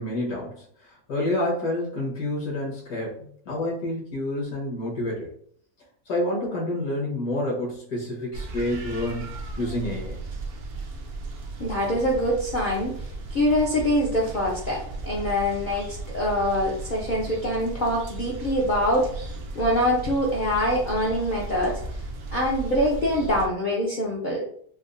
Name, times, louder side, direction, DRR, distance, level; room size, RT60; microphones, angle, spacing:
voice 1, 0.0-5.3 6.1-10.2, left 1 dB, 75° left, -4 dB, 1.6 m, -29 dB
sound 1, 8.3-23.5, right 2 dB, 65° right, 0.6 m, -36 dB
voice 2, 11.6-12.9 13.3-21.8 22.3-24.4, equal, 60° left, -4 dB, 0.5 m, -24 dB
4.3 x 2.0 x 2.5 m, 0.62 s
omnidirectional pair, 1.6 m